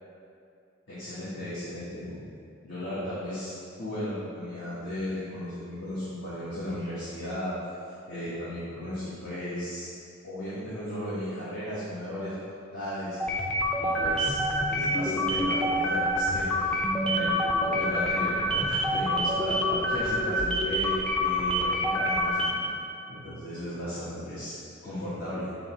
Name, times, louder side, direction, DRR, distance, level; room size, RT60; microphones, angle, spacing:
voice 1, 0.9-2.1 2.6-3.5 3.8-7.5 8.1-9.9 10.2-12.3 12.7-13.4 13.8-14.3 14.7-16.8 17.1-22.5 23.1-24.5 24.8-25.5, left 1 dB, 70° left, -12 dB, 1.5 m, -35 dB
sound 1, 13.2-22.7, equal, 5° left, 0.5 m, -27 dB
7.6 x 3.0 x 4.4 m, 2.6 s
head